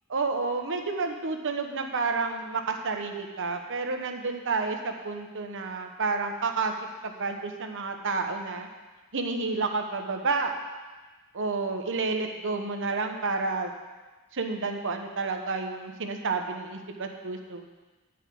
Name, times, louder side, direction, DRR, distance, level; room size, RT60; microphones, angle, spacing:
voice 1, 0.1-6.7 7.0-8.7 9.1-10.5 11.3-13.7 14.3-17.7, right 4 dB, 60° right, 4 dB, 1.1 m, -30 dB
10.5 x 5.5 x 8.5 m, 1.3 s
head